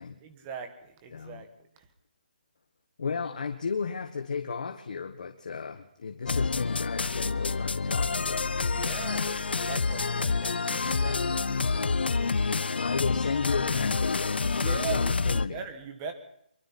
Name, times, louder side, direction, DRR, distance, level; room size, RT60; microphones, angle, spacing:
voice 1, 0.2-1.5 1.8-1.9 8.6-12.3 14.6-16.1, right 6 dB, 15° right, 7 dB, 1.6 m, -40 dB
voice 2, 1.1-1.4 3.0-8.4 12.8-15.6, left 5 dB, 50° left, 5 dB, 1.6 m, -34 dB
sound 1, 6.3-15.5, left 4 dB, 80° left, 0.8 m, -28 dB
25.0 x 23.5 x 4.4 m, 0.73 s
hypercardioid pair, 175°, 5 cm